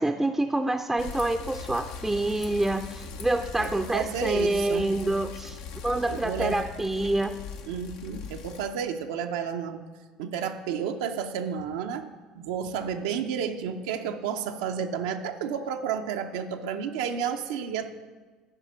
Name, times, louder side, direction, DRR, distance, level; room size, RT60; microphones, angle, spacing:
voice 1, 0.0-5.6 5.8-7.3, right 2 dB, 10° right, 5 dB, 0.5 m, -27 dB
Bicycle, 1.0-8.7, left 6 dB, 80° left, 0.9 m, -40 dB
voice 2, 3.6-4.9 6.1-6.6 7.7-9.8 10.2-12.1 12.3-17.9, right 7 dB, 85° right, 5 dB, 0.6 m, -31 dB
11.0 x 5.0 x 6.2 m, 1.4 s
supercardioid pair, 85°, 2 cm